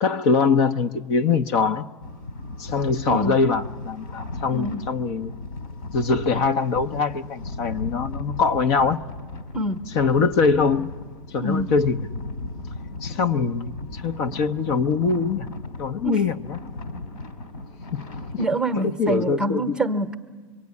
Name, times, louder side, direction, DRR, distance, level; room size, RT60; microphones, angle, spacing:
voice 1, 0.0-1.9 2.6-5.3 5.9-9.0 9.9-10.9 11.3-12.1 13.0-15.5 15.8-16.6 17.9-18.0 18.7-19.8, left 5 dB, 50° left, 0.9 m, -23 dB
sound 1, 2.0-18.4, left 2 dB, 75° left, 4.1 m, -36 dB
voice 2, 3.1-3.4 4.5-4.8 9.5-9.9 11.4-11.7 16.0-16.2 18.4-20.1, right 1 dB, 5° right, 1.0 m, -25 dB
25.0 x 23.0 x 9.6 m
hypercardioid pair, 130°, 18 cm